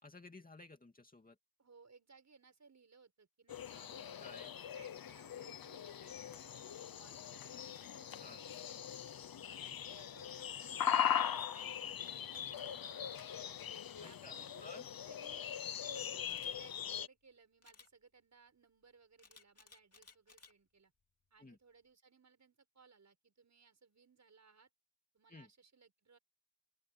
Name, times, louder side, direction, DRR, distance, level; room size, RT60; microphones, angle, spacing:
voice 1, 0.0-1.4 4.2-4.5 8.2-8.5 14.0-14.8 21.4-21.6 25.3-25.5, left 2 dB, 20° left, 2.6 m, -55 dB
voice 2, 1.6-7.9 9.5-13.5 14.0-14.7 15.1-15.4 15.8-20.9 21.3-24.7 25.1-26.2, right 5 dB, 40° right, 7.2 m, -64 dB
sound 1, 3.5-17.1, left 9 dB, 55° left, 1.0 m, -40 dB
Camera, 16.2-16.5 17.6-17.9 19.2-20.5 21.0-21.3, left 4 dB, 35° left, 2.6 m, -61 dB
open air
wide cardioid pair, 160°, 42 cm